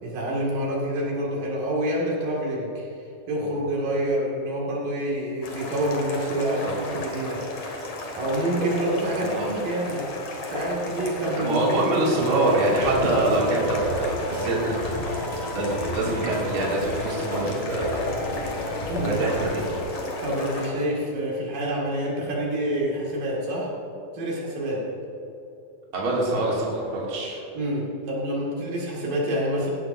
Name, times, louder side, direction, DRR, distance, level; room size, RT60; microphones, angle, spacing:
voice 1, 0.0-2.9 3.3-7.4 8.2-10.1 10.5-11.9 18.9-19.1 20.2-23.7 24.1-24.9 27.5-29.7, right 1 dB, 70° right, -4 dB, 3.7 m, -27 dB
sound 1, 5.4-20.7, left 1 dB, 55° left, 2.6 m, -33 dB
voice 2, 9.2-9.6 11.4-18.0 19.0-19.6 25.9-27.4, right 2 dB, 40° right, -5 dB, 2.9 m, -25 dB
sound 2, 12.4-19.8, left 2 dB, 15° left, 2.3 m, -34 dB
17.0 x 12.5 x 2.6 m, 2.9 s
omnidirectional pair, 4.1 m